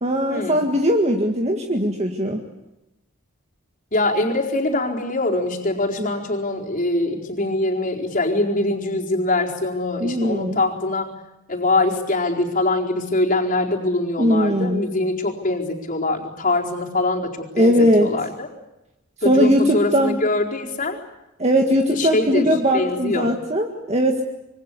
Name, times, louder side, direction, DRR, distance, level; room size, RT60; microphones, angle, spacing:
voice 1, 0.0-2.4 6.0-6.1 10.0-10.6 14.2-14.8 17.6-18.1 19.2-20.2 21.4-24.2, equal, 30° right, 3 dB, 1.9 m, -19 dB
voice 2, 3.9-11.1 11.5-17.3 17.6-18.5 19.2-21.0 21.9-22.4 22.7-23.3, left 2 dB, 40° left, 0 dB, 4.4 m, -23 dB
26.5 x 23.5 x 8.4 m, 0.95 s
head